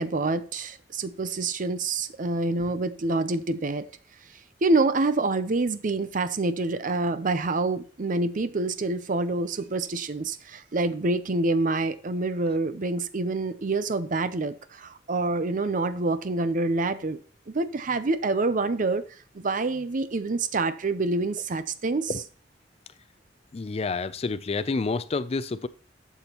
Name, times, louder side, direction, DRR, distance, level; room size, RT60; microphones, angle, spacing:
voice 1, 0.0-3.8 4.6-17.2 17.5-19.0 19.3-22.1, right 3 dB, 50° right, 0.6 m, -27 dB
voice 2, 23.5-25.7, left 4 dB, 35° left, 0.4 m, -29 dB
12.0 x 7.1 x 3.0 m
head